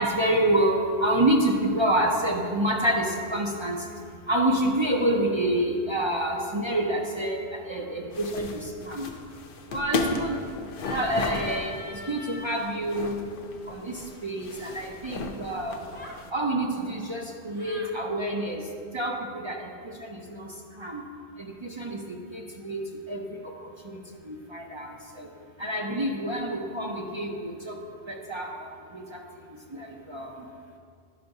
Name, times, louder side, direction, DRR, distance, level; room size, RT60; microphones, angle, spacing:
voice 1, 0.0-3.8 4.3-8.5 8.8-9.1 9.7-10.3 10.9-11.8 12.1-13.3 13.7-15.8 16.3-18.6 18.9-19.7 20.0-20.5 20.8-21.0 21.4-23.4 23.8-24.0 24.3-25.3 25.6-27.8 28.1-28.5 28.9-29.2 29.7-30.3, right 1 dB, 40° right, -1 dB, 0.4 m, -27 dB
sound 1, 8.1-16.3, left 4 dB, 65° left, 0.7 m, -35 dB
sound 2, 10.7-12.7 15.9-16.2 17.5-17.9, left 2 dB, 15° left, 0.5 m, -42 dB
10.5 x 5.6 x 2.6 m, 2.3 s
omnidirectional pair, 1.0 m